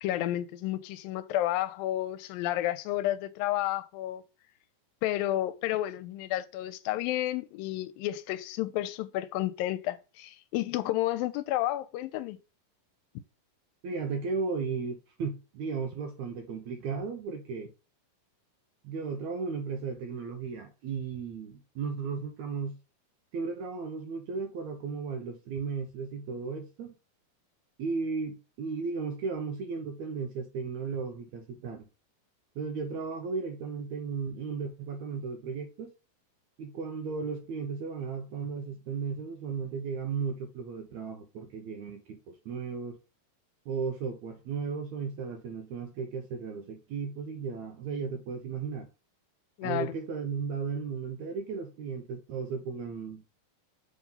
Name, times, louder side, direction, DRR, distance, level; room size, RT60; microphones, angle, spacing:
voice 1, 0.0-4.2 5.0-12.4 49.6-49.9, left 14 dB, 85° left, 2.3 m, -31 dB
voice 2, 13.8-17.7 18.8-22.8 23.3-26.9 27.8-31.9 32.6-35.9 36.6-43.0 43.7-48.9 49.6-53.2, right 5 dB, 75° right, 1.8 m, -35 dB
6.9 x 3.6 x 5.4 m
omnidirectional pair, 4.2 m